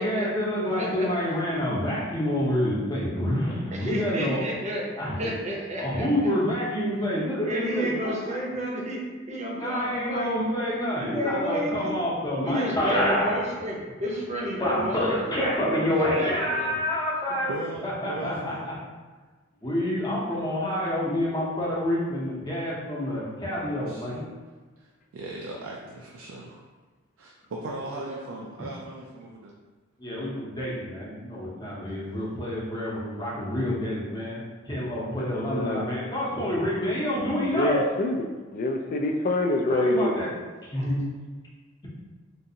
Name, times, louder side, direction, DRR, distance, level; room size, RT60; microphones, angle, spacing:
voice 1, 0.0-4.4 5.0-5.2 5.8-8.0 9.6-13.4 14.6-17.5 17.8-18.7 19.6-24.2 30.0-37.8 39.7-40.3 40.6-41.0, left 1 dB, 20° left, -6 dB, 0.7 m, -27 dB
voice 2, 0.8-1.1 3.7-4.8 5.2-6.0 7.5-9.0 9.3-10.3 10.9-12.1 12.4-15.9 16.1-16.7 28.0-28.2, equal, 35° right, -3 dB, 0.7 m, -31 dB
voice 3, 17.5-18.6 23.8-24.2 24.8-26.6 27.2-29.5 32.0-32.5, right 2 dB, 80° right, -1 dB, 0.4 m, -38 dB
voice 4, 35.2-35.9 37.4-40.1, left 1 dB, 45° left, 4 dB, 0.3 m, -26 dB
3.8 x 2.5 x 2.7 m, 1.3 s
head